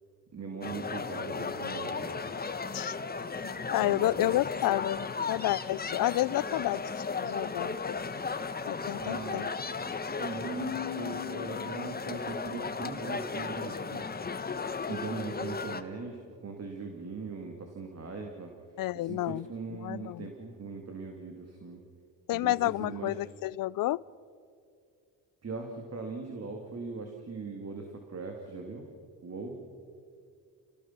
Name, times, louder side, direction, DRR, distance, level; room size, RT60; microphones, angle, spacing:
voice 1, 0.3-2.1 3.6-4.4 8.9-14.0 14.8-18.5 18.9-21.8 22.3-23.2 25.4-28.9 29.2-29.6, right 4 dB, 35° right, 2.7 m, -40 dB
sound 1, 0.6-15.8, left 4 dB, 20° left, 1.2 m, -35 dB
voice 2, 3.4-6.8 7.2-8.0 8.7-9.4 18.8-19.5 19.8-20.3 22.3-24.0, left 16 dB, 55° left, 0.5 m, -30 dB
Keyboard (musical), 10.5-12.4, left 14 dB, 40° left, 1.8 m, -40 dB
29.5 x 18.5 x 6.0 m
cardioid pair, 85°, 41 cm